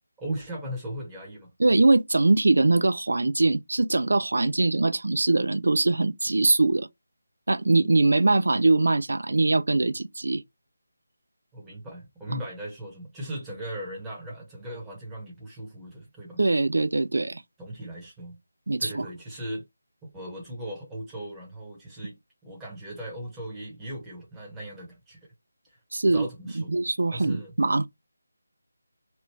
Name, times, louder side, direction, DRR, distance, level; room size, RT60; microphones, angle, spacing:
voice 1, 0.2-1.5 11.5-16.4 17.6-18.4 18.8-19.6 20.0-22.2 22.4-25.2 25.7-25.8 26.1-26.8 27.1-27.5, right 1 dB, 10° right, 1.2 m, -38 dB
voice 2, 1.6-6.9 7.5-10.4 12.3-12.4 16.4-17.4 18.7-19.1 25.9-26.3 26.6-27.9, right 2 dB, 65° right, 0.4 m, -22 dB
3.0 x 2.6 x 3.2 m
figure-of-eight pair, 160°, 0 cm